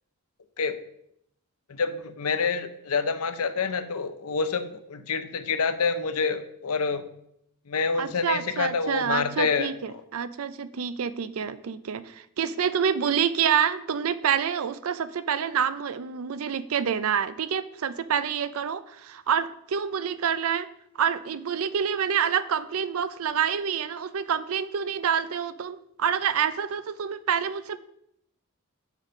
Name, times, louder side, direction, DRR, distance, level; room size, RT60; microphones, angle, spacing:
voice 1, 1.7-7.1 7.7-10.0 11.4-11.5, left 5 dB, 85° left, 10 dB, 0.7 m, -27 dB
voice 2, 8.0-20.7 21.0-27.8, right 7 dB, 75° right, 14 dB, 0.4 m, -27 dB
6.4 x 5.3 x 5.1 m, 0.75 s
head